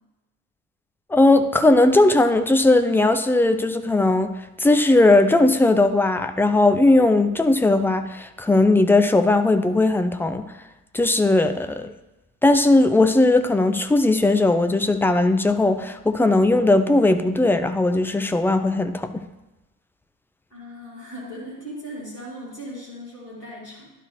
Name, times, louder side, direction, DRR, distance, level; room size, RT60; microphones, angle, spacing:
voice 1, 1.1-4.3 4.6-10.4 10.9-11.9 12.4-19.2, left 2 dB, 5° left, 8 dB, 0.5 m, -18 dB
voice 2, 20.5-23.9, equal, 85° left, -7 dB, 2.0 m, -38 dB
11.5 x 4.3 x 3.3 m, 1.0 s
figure-of-eight pair, 55°, 47 cm